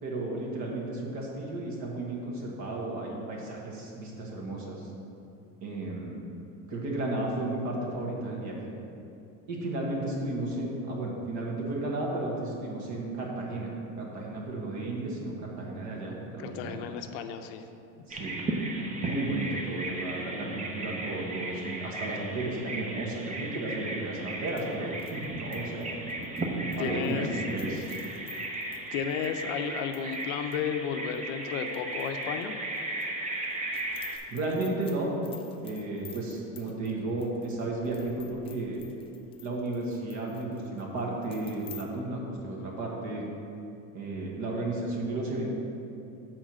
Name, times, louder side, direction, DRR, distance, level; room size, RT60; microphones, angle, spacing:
voice 1, 0.0-4.9 5.6-6.2 6.7-8.6 9.5-13.7 14.0-16.8 18.1-18.4 19.0-25.9 26.8-27.9 34.3-35.1 35.6-38.8 39.4-43.3 43.9-45.5, right 2 dB, 50° right, -2 dB, 1.5 m, -33 dB
voice 2, 16.4-17.6 26.8-27.3 28.9-32.6, left 7 dB, 80° left, 7 dB, 0.6 m, -33 dB
Bird vocalization bird call bird song, 18.1-34.2, right 2 dB, 20° right, 0.6 m, -36 dB
sound 1, 24.3-30.3 30.5-30.6 31.1-32.4 32.7-41.8, left 6 dB, 15° left, 0.3 m, -52 dB
6.3 x 4.5 x 6.2 m, 2.7 s
cardioid pair, 150°, 36 cm